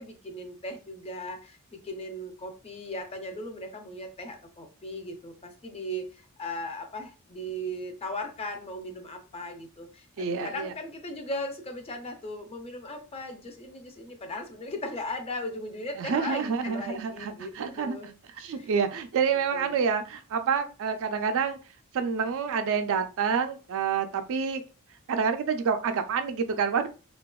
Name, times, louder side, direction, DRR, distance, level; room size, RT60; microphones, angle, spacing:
voice 1, 0.0-18.1 18.5-18.7 19.3-19.8, left 1 dB, 25° left, 0.4 m, -38 dB
voice 2, 10.2-10.7 16.0-21.6 21.9-24.6 25.1-26.9, right 6 dB, 60° right, 0.3 m, -28 dB
2.7 x 2.2 x 2.2 m
head